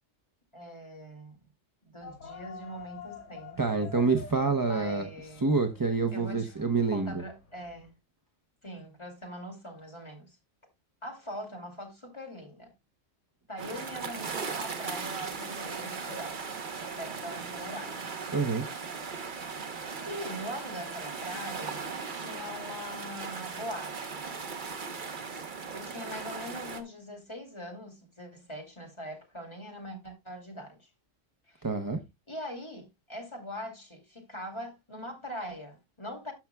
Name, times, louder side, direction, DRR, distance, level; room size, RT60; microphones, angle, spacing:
voice 1, 0.5-1.4 1.8-3.9 4.6-5.5 6.1-6.5 6.9-7.9 8.6-10.4 11.0-12.7 13.5-16.4 16.7-18.1 20.0-24.5 25.7-30.9 31.5-31.7 32.3-36.3, equal, 20° left, 2.5 m, -42 dB
sound 1, 2.0-7.9, left 5 dB, 85° left, 3.9 m, -48 dB
voice 2, 3.6-5.1 5.4-7.2 18.3-18.6 31.6-32.0, right 4 dB, 20° right, 0.6 m, -27 dB
sound 2, 13.6-26.8, right 5 dB, 45° right, 1.0 m, -38 dB
13.5 x 5.8 x 2.2 m
omnidirectional pair, 1.3 m